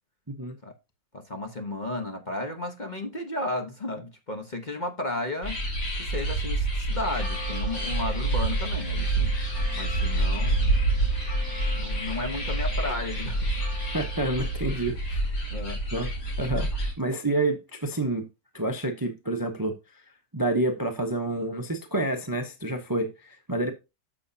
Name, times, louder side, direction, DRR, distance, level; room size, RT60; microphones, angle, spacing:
voice 1, 1.1-5.6 6.0-9.4 9.7-10.8 11.7-13.5 15.5-15.8, left 2 dB, 30° left, 1.1 m, -33 dB
sound 1, 5.4-16.9, right 2 dB, 75° left, 3.1 m, -27 dB
sound 2, 6.9-14.6, left 1 dB, 10° left, 4.4 m, -43 dB
voice 2, 13.9-15.3 15.9-18.3 18.5-19.7 20.3-23.7, right 2 dB, 15° right, 0.7 m, -28 dB
9.8 x 7.1 x 2.7 m
omnidirectional pair, 1.8 m